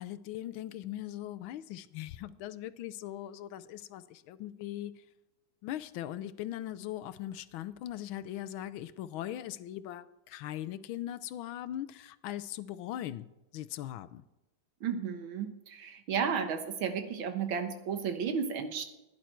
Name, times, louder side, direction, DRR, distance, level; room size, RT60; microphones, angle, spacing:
voice 1, 0.0-5.0 5.6-13.3 13.5-14.2, left 12 dB, 85° left, 1.4 m, -40 dB
voice 2, 14.8-18.8, right 6 dB, 80° right, 2.0 m, -33 dB
15.5 x 10.5 x 4.5 m
omnidirectional pair, 2.2 m